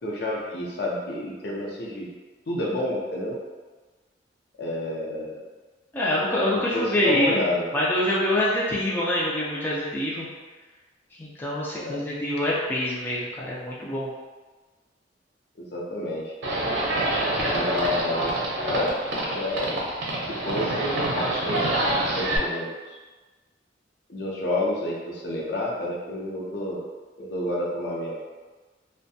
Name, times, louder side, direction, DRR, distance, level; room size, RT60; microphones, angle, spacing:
voice 1, 0.0-2.1 2.5-3.4 4.6-5.4 6.7-7.7 11.7-12.0 15.6-16.6 17.5-18.9 19.3-19.8 20.3-23.0 24.1-26.8 27.2-28.2, left 1 dB, 60° left, -4 dB, 0.6 m, -29 dB
voice 2, 5.9-7.4 7.7-10.3 11.2-14.1, left 1 dB, 10° left, -7 dB, 0.3 m, -25 dB
Livestock farm animals working animals, 16.4-22.4, right 1 dB, 75° right, 0.6 m, -26 dB
2.6 x 2.2 x 2.6 m, 1.3 s
head